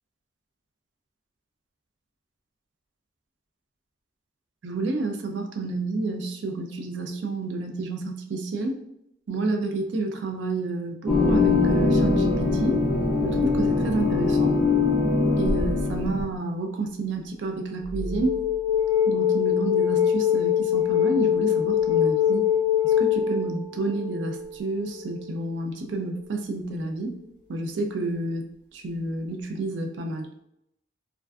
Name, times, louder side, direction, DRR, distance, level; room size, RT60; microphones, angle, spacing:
voice 1, 4.6-8.8 9.3-12.8 13.2-14.6 15.4-18.4 19.1-22.5 22.8-27.2 27.5-28.4 28.7-30.3, right 2 dB, 70° right, 3 dB, 0.4 m, -30 dB
sound 1, 11.1-16.2, left 3 dB, ahead, 0.4 m, -22 dB
sound 2, 15.5-16.2 17.9-25.5, left 9 dB, 50° right, 0.8 m, -24 dB
2.5 x 2.2 x 2.2 m, 0.76 s
head